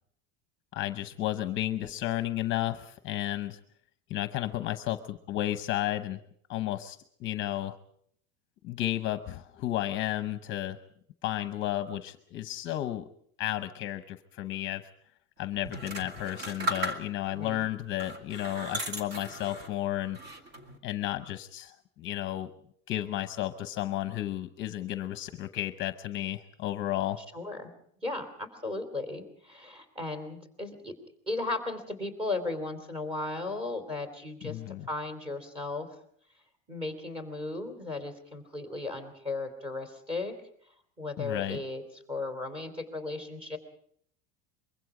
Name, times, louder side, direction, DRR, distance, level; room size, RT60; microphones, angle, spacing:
voice 1, 0.7-3.6 4.1-6.2 6.5-7.8 8.6-10.8 11.2-13.0 13.4-14.9 15.4-20.2 20.8-22.5 22.9-27.2 34.4-34.9 41.2-41.6, left 14 dB, 35° left, 10 dB, 0.8 m, -33 dB
sound 1, 15.7-17.4 17.9-19.8 20.2-20.8, right 1 dB, 45° right, 2.4 m, -36 dB
voice 2, 17.2-17.6 27.2-27.7 28.0-30.9 31.3-34.6 34.9-35.9 36.7-40.3 41.0-41.8 42.1-43.6, left 2 dB, 15° right, 3 dB, 3.1 m, -36 dB
24.0 x 23.0 x 4.9 m, 0.65 s
cardioid pair, 165°, 33 cm